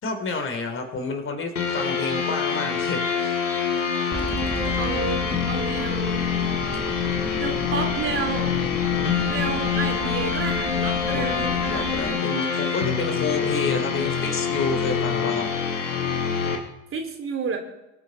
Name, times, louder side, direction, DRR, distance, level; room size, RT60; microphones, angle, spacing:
voice 1, 0.0-3.4 11.1-15.5, left 3 dB, 35° left, 6 dB, 3.0 m, -30 dB
sound 1, 1.6-16.6, left 6 dB, 90° left, 2.1 m, -25 dB
sound 2, 4.1-12.1, right 2 dB, 5° right, 1.9 m, -35 dB
voice 2, 4.4-6.3 7.4-8.5 9.3-11.9 16.9-17.6, right 5 dB, 35° right, 3 dB, 3.2 m, -31 dB
23.0 x 10.0 x 4.0 m, 0.97 s
hypercardioid pair, 70°, 36 cm